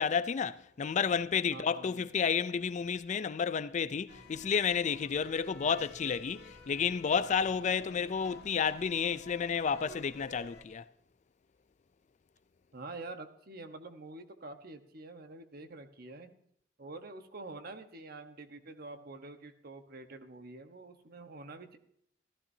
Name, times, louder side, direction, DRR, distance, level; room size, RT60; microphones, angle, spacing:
voice 1, 0.0-10.8, left 6 dB, 40° left, 0.4 m, -31 dB
voice 2, 1.5-2.1 5.7-5.8 12.7-16.4 16.8-21.8, right 2 dB, 55° right, 1.1 m, -47 dB
sound 1, 4.1-10.6, left 2 dB, 60° left, 2.5 m, -51 dB
15.0 x 14.5 x 2.7 m
head